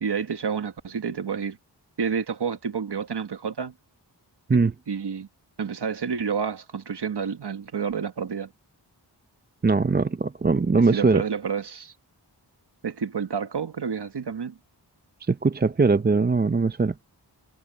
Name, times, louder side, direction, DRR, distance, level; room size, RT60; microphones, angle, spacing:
voice 1, 0.0-1.6 2.0-3.7 4.9-5.3 5.6-8.5 10.9-11.9 12.8-14.6, right 6 dB, 70° right, 1.4 m, -29 dB
voice 2, 9.6-11.2 15.2-16.9, right 4 dB, 25° right, 0.5 m, -21 dB
wide cardioid pair, 70°, 42 cm